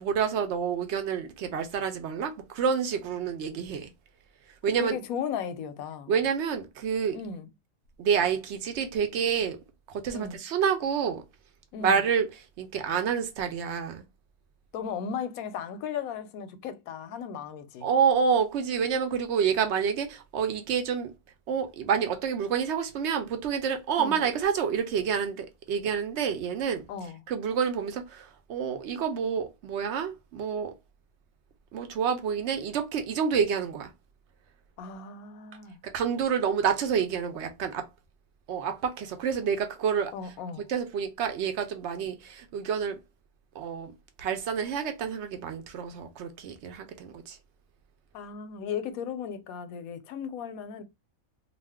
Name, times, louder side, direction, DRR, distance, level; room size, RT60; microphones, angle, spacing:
voice 1, 0.0-3.9 4.6-5.0 6.1-7.2 8.0-9.6 10.0-11.2 11.8-12.3 12.6-14.0 17.8-21.1 21.5-26.8 27.3-30.7 31.7-33.9 35.9-37.8 38.5-40.1 40.7-43.0 43.6-43.9 44.2-47.4, right 7 dB, 65° right, 0.8 m, -28 dB
voice 2, 4.8-6.1 7.1-7.5 10.1-10.4 11.7-12.0 14.7-17.9 24.0-24.2 26.9-27.2 34.8-35.8 40.1-40.7 48.1-50.8, left 7 dB, 85° left, 1.0 m, -36 dB
2.5 x 2.4 x 3.4 m
omnidirectional pair, 1.4 m